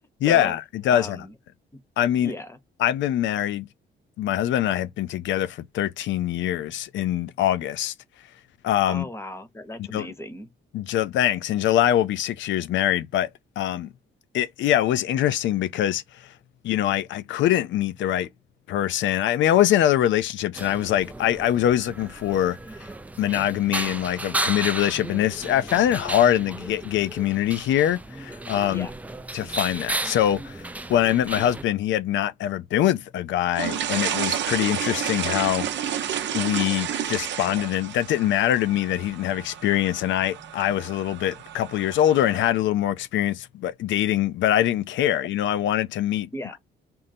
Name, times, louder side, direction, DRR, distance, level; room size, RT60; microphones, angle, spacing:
voice 1, 0.2-1.3 2.0-2.3 2.8-3.7 4.2-7.9 8.6-9.0 9.8-10.1 10.7-13.3 13.6-13.9 14.3-16.3 16.6-18.3 18.7-22.9 23.2-28.9 29.3-30.6 30.9-35.9 36.3-46.3, left 11 dB, 75° left, 0.4 m, -23 dB
voice 2, 0.9-1.3 2.2-2.6 8.9-10.5 28.7-28.9 46.3-46.6, left 1 dB, 15° left, 0.9 m, -36 dB
sound 1, 20.5-31.6, right 2 dB, 10° right, 0.3 m, -34 dB
sound 2, 33.5-42.5, right 9 dB, 65° right, 0.6 m, -31 dB
3.7 x 2.0 x 4.2 m
cardioid pair, 90°, 20 cm